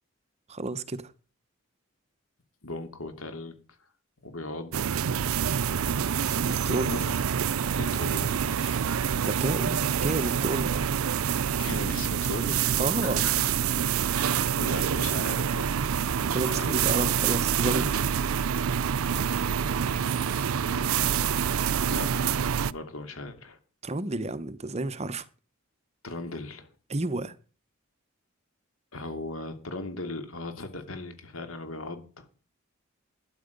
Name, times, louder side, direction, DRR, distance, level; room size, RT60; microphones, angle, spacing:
voice 1, 0.5-1.1 6.3-7.0 9.2-10.7 12.8-13.3 16.1-18.0 23.8-25.3 26.9-27.3, right 2 dB, 30° right, 0.9 m, -31 dB
voice 2, 2.6-3.6 4.2-5.1 6.8-7.2 7.7-9.2 11.6-12.7 13.0-13.3 14.1-15.8 16.4-17.1 19.1-20.2 20.7-21.2 21.8-22.4 22.7-23.6 26.0-26.7 28.9-32.3, left 2 dB, 80° left, 2.7 m, -38 dB
sound 1, 4.7-22.7, right 8 dB, 90° right, 0.5 m, -27 dB
12.5 x 10.5 x 5.3 m
head